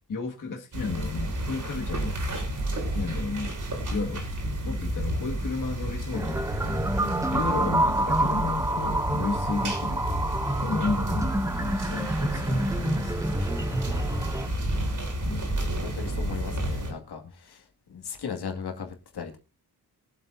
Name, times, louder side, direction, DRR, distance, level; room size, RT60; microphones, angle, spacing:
voice 1, 0.1-2.2 2.9-3.6 3.9-4.3 4.6-6.8 7.3-10.0 10.6-13.3 15.2-15.5, left 4 dB, 50° left, 2.0 m, -33 dB
sound 1, 0.7-16.9, right 1 dB, 50° right, 4.8 m, -31 dB
sound 2, 6.1-14.5, right 1 dB, 10° right, 0.6 m, -28 dB
voice 2, 15.8-19.4, left 6 dB, 75° left, 2.3 m, -38 dB
22.5 x 8.0 x 2.7 m
wide cardioid pair, 170°, 39 cm